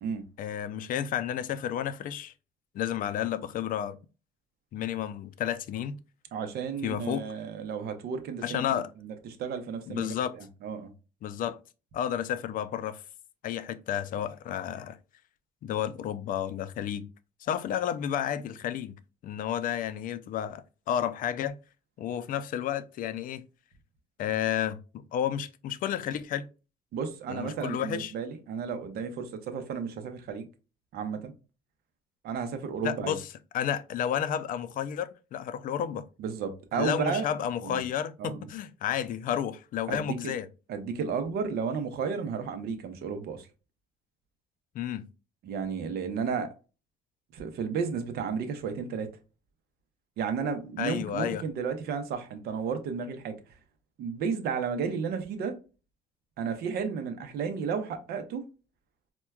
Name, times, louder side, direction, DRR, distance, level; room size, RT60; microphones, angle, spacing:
voice 1, 0.4-2.3 2.7-4.0 4.7-6.0 6.8-7.2 8.4-8.9 9.9-10.3 11.2-11.6 11.9-13.0 13.4-15.0 15.6-17.1 17.4-18.9 19.2-21.6 22.0-23.4 24.2-26.5 27.3-28.1 32.8-33.2 33.5-36.0 36.7-40.5 44.7-45.0 50.8-51.4, left 10 dB, 55° left, 0.4 m, -31 dB
voice 2, 6.3-10.9 26.9-30.5 30.9-31.3 32.2-33.1 36.2-37.3 37.6-37.9 38.2-38.4 39.9-40.3 40.7-43.5 45.4-46.5 47.3-49.1 50.2-53.4 54.0-55.5 56.4-58.4, right 6 dB, 70° right, 0.7 m, -33 dB
4.4 x 2.2 x 2.2 m
cardioid pair, 110°, 17 cm